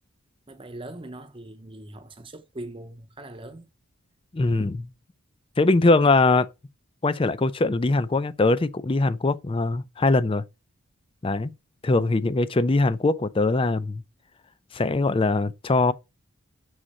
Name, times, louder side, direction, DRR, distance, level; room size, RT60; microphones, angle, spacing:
voice 1, 0.5-3.7, right 1 dB, 25° right, 0.6 m, -41 dB
voice 2, 4.3-4.9 5.6-6.5 7.0-10.4 11.2-11.5 11.8-14.0 14.7-15.9, left 2 dB, 25° left, 0.4 m, -22 dB
6.4 x 3.7 x 4.2 m
head